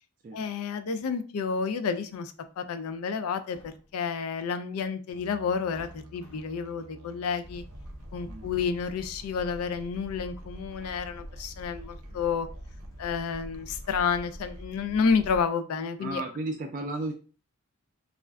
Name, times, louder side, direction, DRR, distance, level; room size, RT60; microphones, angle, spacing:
voice 1, 0.3-7.6 8.1-12.5 13.0-16.2, left 5 dB, 80° left, 9 dB, 0.4 m, -30 dB
sound 1, 3.5-4.0 5.1-5.2 5.7-6.7, equal, 55° left, 0.8 m, -54 dB
Musical instrument, 5.1-14.7, right 2 dB, 80° right, 0.6 m, -52 dB
sound 2, 7.4-15.4, equal, 15° left, 0.5 m, -45 dB
voice 2, 16.0-17.1, right 2 dB, 40° right, 3 dB, 0.3 m, -33 dB
2.4 x 2.1 x 3.3 m, 0.37 s
head